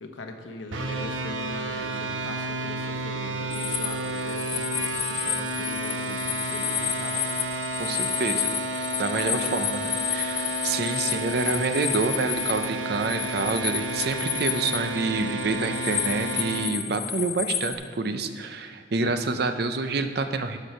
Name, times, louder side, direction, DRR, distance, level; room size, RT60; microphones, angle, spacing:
voice 1, 0.0-7.2 9.1-9.6 9.9-10.3, left 2 dB, 80° left, 4 dB, 1.0 m, -40 dB
sound 1, 0.7-16.7, right 2 dB, 85° right, 0.9 m, -31 dB
sound 2, 3.5-12.7 12.9-17.7, left 9 dB, 30° left, 0.5 m, -31 dB
voice 2, 7.8-8.5 8.8-20.6, right 3 dB, 55° right, 9 dB, 0.6 m, -28 dB
11.5 x 4.7 x 5.7 m, 2.3 s
head